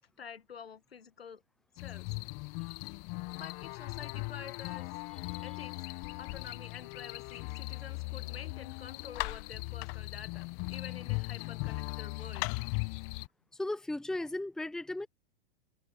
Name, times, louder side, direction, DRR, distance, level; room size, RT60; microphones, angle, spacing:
voice 1, 0.2-1.4 1.7-2.1 3.3-4.9 5.4-5.7 6.2-12.5, left 7 dB, 85° left, 2.0 m, -48 dB
sound 1, 1.8-13.3, left 30 dB, 45° left, 1.5 m, -38 dB
voice 2, 13.5-15.1, left 2 dB, ahead, 0.8 m, -36 dB
hypercardioid pair, 105°, 29 cm